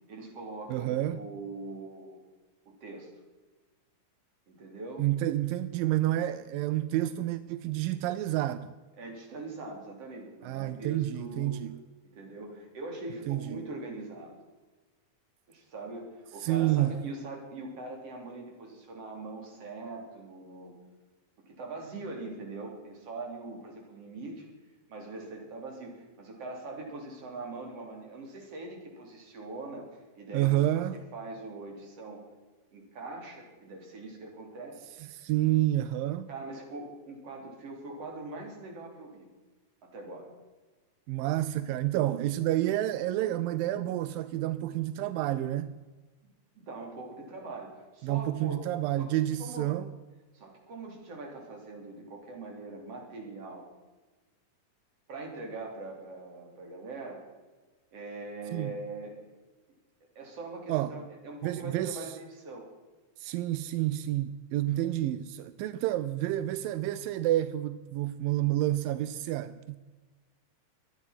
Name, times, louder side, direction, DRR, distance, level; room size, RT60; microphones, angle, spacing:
voice 1, 0.1-2.2 2.7-3.1 4.5-5.0 9.0-11.6 12.0-14.3 15.5-20.7 21.4-24.5 24.9-32.2 32.7-34.9 36.3-39.3 39.8-40.3 46.6-48.6 49.0-49.1 49.4-49.7 50.3-53.7 55.1-57.2 57.9-59.3 60.2-62.7, right 3 dB, 45° right, 4.1 m, -42 dB
voice 2, 0.7-1.2 5.0-8.7 10.4-11.8 13.3-13.6 16.4-17.0 30.3-31.0 35.0-36.3 41.1-45.8 48.0-49.9 58.5-58.7 60.7-61.0 61.4-62.1 63.2-69.8, right 14 dB, 85° right, 2.3 m, -29 dB
24.0 x 9.8 x 5.8 m
omnidirectional pair, 3.9 m